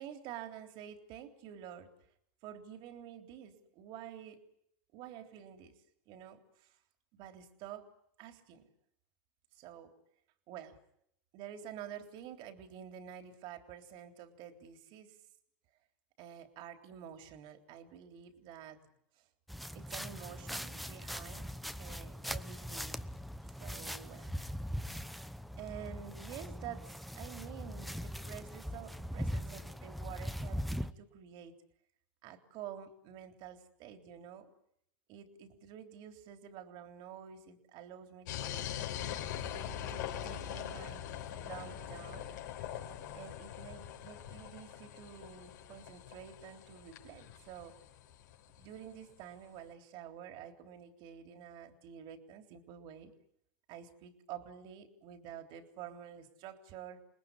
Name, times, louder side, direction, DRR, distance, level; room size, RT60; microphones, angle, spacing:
voice 1, 0.0-1.9 2.4-4.5 4.9-5.7 6.1-6.8 7.1-7.9 8.2-8.7 9.5-10.0 10.5-10.8 11.3-15.2 16.2-18.9 19.2-19.3 19.7-21.5 21.8-23.1 23.6-24.3 25.6-31.6 32.2-34.5 35.1-38.7 39.9-42.3 43.1-47.8 48.6-53.1 53.7-57.0, right 9 dB, 55° right, 7 dB, 3.6 m, -49 dB
sound 1, 19.5-30.9, equal, ahead, 1.0 m, -41 dB
sound 2, 38.3-49.0, left 10 dB, 80° left, 4.9 m, -43 dB
29.5 x 20.0 x 9.9 m, 0.73 s
supercardioid pair, 120°, 10 cm